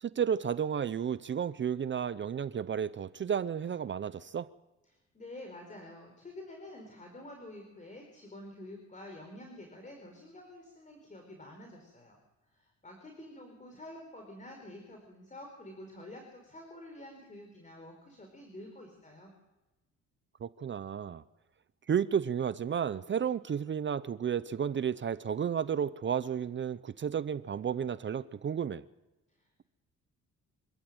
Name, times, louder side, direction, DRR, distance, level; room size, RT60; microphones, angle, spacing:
voice 1, 0.0-4.5 20.4-21.2 21.9-28.8, right 8 dB, 40° right, 15 dB, 0.7 m, -32 dB
voice 2, 4.8-12.2 12.5-19.3 29.4-29.7, left 1 dB, 25° left, 3 dB, 4.7 m, -48 dB
26.0 x 14.0 x 7.9 m, 1.1 s
cardioid pair, 90°, 30 cm